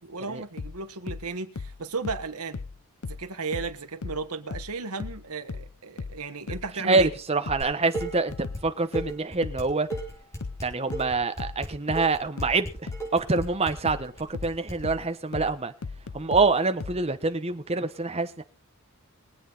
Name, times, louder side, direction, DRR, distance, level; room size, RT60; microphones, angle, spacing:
voice 1, 0.0-2.6 3.1-7.1, right 4 dB, 85° right, 1.5 m, -34 dB
sound 1, 0.6-17.1, left 4 dB, 75° left, 0.6 m, -37 dB
voice 2, 6.8-8.3 8.6-9.9 10.6-15.7 16.1-18.4, right 3 dB, 30° right, 1.1 m, -26 dB
Dishes pots and pans, 7.6-8.6 8.9-14.7, right 3 dB, 15° left, 4.5 m, -36 dB
23.0 x 8.3 x 4.0 m
head